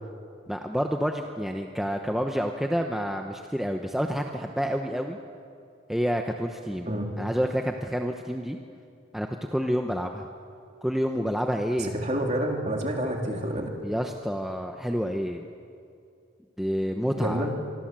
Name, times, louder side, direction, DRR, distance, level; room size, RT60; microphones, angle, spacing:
voice 1, 0.5-5.2 5.9-6.9 7.2-8.6 9.1-10.3 10.8-11.9 13.8-15.5 16.6-17.5, equal, ahead, 3 dB, 0.9 m, -28 dB
voice 2, 6.9-7.2 11.8-13.7 17.2-17.5, right 1 dB, 35° right, 1 dB, 3.4 m, -28 dB
25.5 x 24.5 x 7.6 m, 2.4 s
head